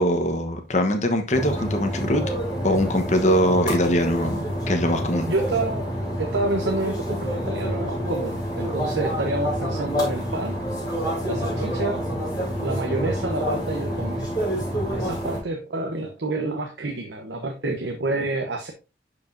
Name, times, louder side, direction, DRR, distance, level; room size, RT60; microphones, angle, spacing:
voice 1, 0.0-2.2 2.6-5.3, equal, 40° left, 5 dB, 1.1 m, -22 dB
sound 1, 1.3-15.4, equal, 20° left, 3.6 m, -28 dB
voice 2, 5.3-10.6 11.2-12.0 12.6-14.3 14.8-18.7, right 2 dB, 85° right, 3 dB, 1.0 m, -28 dB
10.5 x 5.0 x 2.7 m, 0.29 s
head